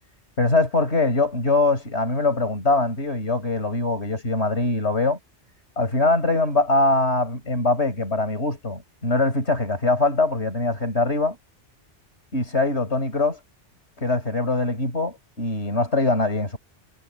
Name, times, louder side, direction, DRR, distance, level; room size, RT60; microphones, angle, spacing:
voice 1, 0.4-5.2 5.8-11.4 12.3-13.4 14.0-16.6, left 2 dB, 65° left, 5.2 m, -22 dB
omnidirectional pair, 1.2 m